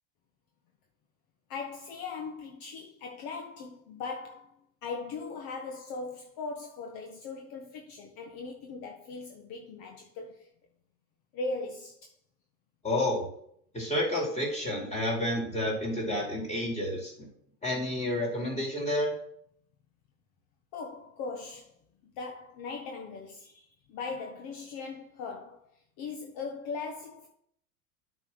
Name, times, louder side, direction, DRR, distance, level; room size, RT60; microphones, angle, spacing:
voice 1, 1.5-4.5 4.8-10.5 11.3-12.1 20.7-21.7 22.0-25.7 26.0-27.3, left 4 dB, 55° left, 1.5 m, -39 dB
voice 2, 12.8-13.2 13.7-17.3 17.6-19.1, left 1 dB, 15° left, 4.1 m, -30 dB
8.8 x 4.4 x 6.2 m
hypercardioid pair, 100°, 42 cm